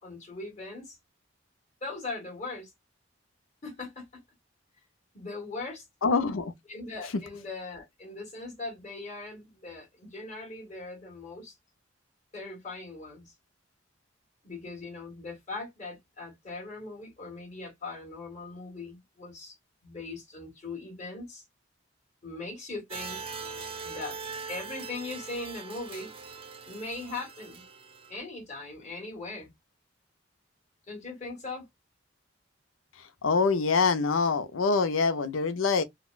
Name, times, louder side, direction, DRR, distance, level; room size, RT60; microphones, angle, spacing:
voice 1, 0.0-1.0 1.8-2.7 3.6-4.2 5.1-5.9 6.7-11.6 12.3-13.3 14.4-19.6 19.8-21.4 22.2-23.2 23.8-24.2 24.5-26.1 26.6-27.6 28.1-29.5 30.9-31.7, left 3 dB, 35° left, 1.6 m, -40 dB
voice 2, 6.0-6.5 33.2-35.8, left 4 dB, 85° left, 0.6 m, -25 dB
sound 1, 22.9-28.2, right 5 dB, 30° right, 0.6 m, -41 dB
3.9 x 2.2 x 2.3 m
head